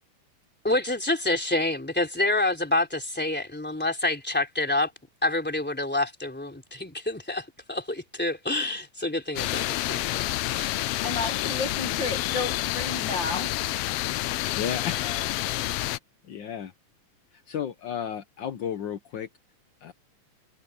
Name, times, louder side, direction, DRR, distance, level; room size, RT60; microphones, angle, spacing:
voice 1, 0.6-4.9 5.2-10.8, left 2 dB, 5° left, 3.0 m, -28 dB
sound 1, 9.4-16.0, left 16 dB, 85° left, 1.4 m, -29 dB
voice 2, 11.0-13.6, left 3 dB, 45° left, 2.3 m, -32 dB
voice 3, 14.6-15.3 16.3-16.7 17.3-19.3 19.8-19.9, left 8 dB, 65° left, 1.1 m, -33 dB
omnidirectional pair, 3.3 m